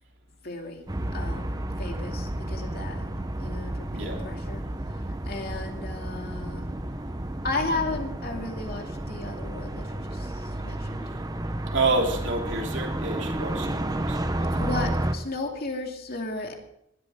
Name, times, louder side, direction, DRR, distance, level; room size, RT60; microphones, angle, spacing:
voice 1, 0.4-0.8 1.1-1.5 1.8-4.6 5.2-6.6 7.4-10.3 10.6-11.0 14.6-16.6, left 2 dB, 50° left, 2.5 m, -34 dB
sound 1, 0.9-15.1, right 1 dB, 20° right, 0.9 m, -31 dB
voice 2, 3.9-4.3 11.7-15.1, right 3 dB, 65° right, 3.2 m, -29 dB
19.5 x 12.5 x 3.7 m
head